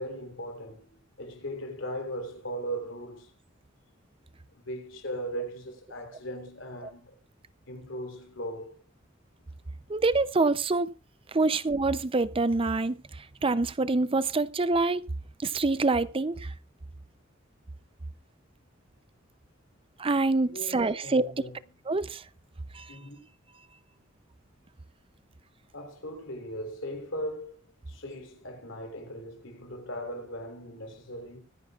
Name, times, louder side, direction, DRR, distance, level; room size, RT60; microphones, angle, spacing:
voice 1, 0.0-3.3 4.5-7.2 7.7-8.7 20.4-21.8 22.9-23.3 25.7-27.6 27.9-31.4, equal, 70° left, 3.7 m, -38 dB
voice 2, 9.9-10.9 11.3-13.0 13.4-15.1 15.4-16.5 20.0-21.3 21.9-22.2 22.7-22.9, right 3 dB, 30° right, 0.6 m, -26 dB
25.0 x 10.5 x 2.4 m
head